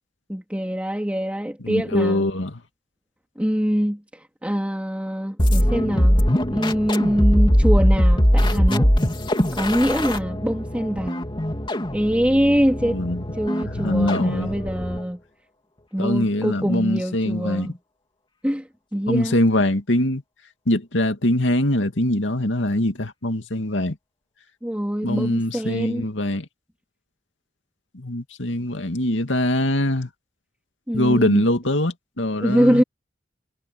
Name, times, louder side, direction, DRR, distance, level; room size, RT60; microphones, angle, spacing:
voice 1, 0.3-2.3 3.4-6.2 6.5-8.9 9.5-11.2 11.9-13.0 13.3-15.2 15.9-17.8 18.4-19.4 24.6-26.0 30.9-31.4 32.4-32.8, equal, 10° right, 3.2 m, -24 dB
voice 2, 1.6-2.6 12.8-13.2 13.7-14.5 16.0-17.7 19.1-20.2 20.7-23.9 25.0-26.5 27.9-30.1 30.9-32.8, left 1 dB, 85° left, 2.4 m, -23 dB
sound 1, 5.4-15.1, equal, 25° left, 3.3 m, -21 dB
head